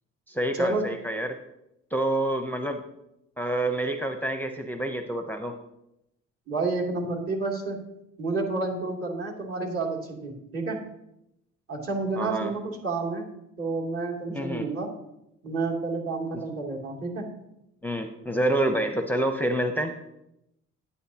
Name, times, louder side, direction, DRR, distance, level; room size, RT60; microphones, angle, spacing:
voice 1, 0.3-1.4 1.9-2.8 3.4-5.5 12.2-12.5 14.3-14.7 17.8-20.0, right 1 dB, 5° left, 5 dB, 0.7 m, -28 dB
voice 2, 6.5-7.8 8.2-10.8 11.7-13.2 13.6-14.9 15.4-17.2, right 3 dB, 45° right, -3 dB, 2.9 m, -29 dB
10.0 x 9.9 x 2.9 m, 0.85 s
cardioid pair, 90°, 30 cm